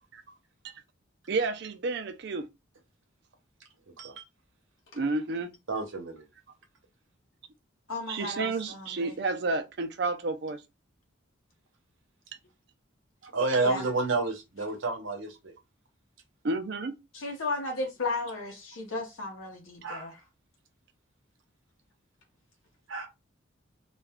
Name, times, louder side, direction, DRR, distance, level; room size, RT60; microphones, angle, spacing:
voice 1, 1.3-2.5 4.9-5.5 8.1-10.6 16.4-17.0, right 3 dB, 55° right, 0.4 m, -30 dB
voice 2, 5.7-6.2 13.2-15.5 19.8-20.1 22.9-23.1, right 3 dB, 80° right, 0.8 m, -30 dB
voice 3, 7.9-9.1 13.5-13.8 17.1-20.2, left 2 dB, 85° left, 0.7 m, -35 dB
2.4 x 2.2 x 3.4 m
head